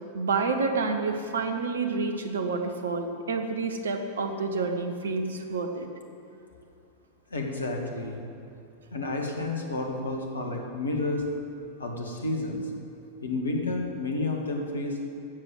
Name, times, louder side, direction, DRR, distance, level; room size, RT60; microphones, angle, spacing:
voice 1, 0.1-5.9, right 4 dB, 65° right, 5 dB, 1.3 m, -29 dB
voice 2, 7.3-8.2 8.9-11.2 11.8-12.6 13.2-15.0, left 2 dB, 75° left, 2 dB, 1.9 m, -30 dB
13.0 x 7.9 x 8.2 m, 2.6 s
figure-of-eight pair, 90°, 0 cm